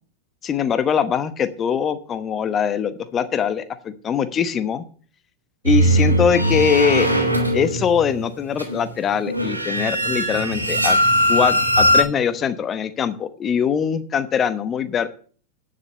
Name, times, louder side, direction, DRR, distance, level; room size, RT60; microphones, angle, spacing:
voice 1, 0.4-4.8 5.6-7.1 7.5-11.0 11.3-15.1, left 7 dB, 25° left, 12 dB, 1.0 m, -22 dB
sound 1, 5.6-12.0, equal, 85° right, 3.0 m, -20 dB
10.5 x 6.7 x 6.7 m, 0.44 s
figure-of-eight pair, 90°, 0 cm